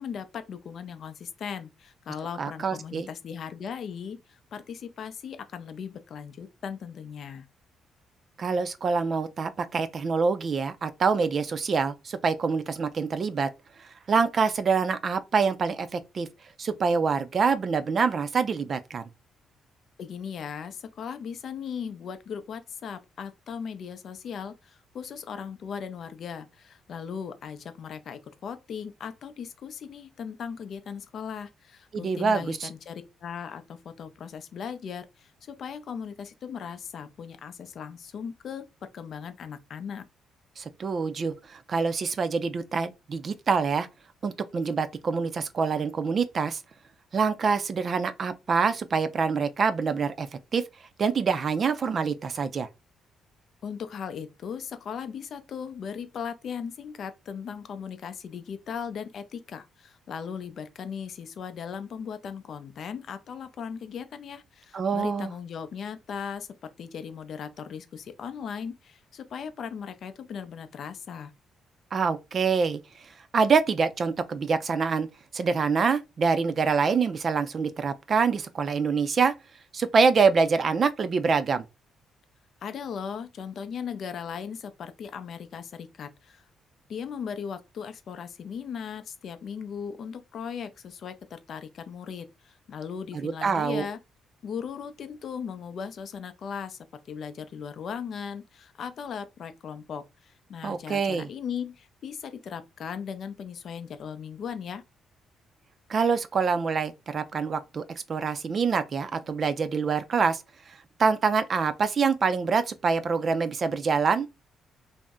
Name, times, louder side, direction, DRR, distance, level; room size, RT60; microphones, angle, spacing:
voice 1, 0.0-7.5 20.0-38.7 38.9-40.0 53.6-71.3 82.6-86.4 86.9-94.0 94.4-96.8 97.1-104.8, left 7 dB, 60° left, 0.4 m, -38 dB
voice 2, 2.4-3.1 8.4-13.5 14.1-16.3 16.6-19.0 31.9-32.7 40.6-43.9 44.2-46.6 47.1-50.3 50.5-50.6 51.0-52.7 64.7-65.3 71.9-72.8 73.3-75.1 75.3-79.3 79.7-81.6 93.1-93.9 100.6-101.3 105.9-107.8 108.1-110.4 111.0-114.3, right 5 dB, 45° right, 0.4 m, -25 dB
2.6 x 2.0 x 3.5 m
cardioid pair, 90°, 0 cm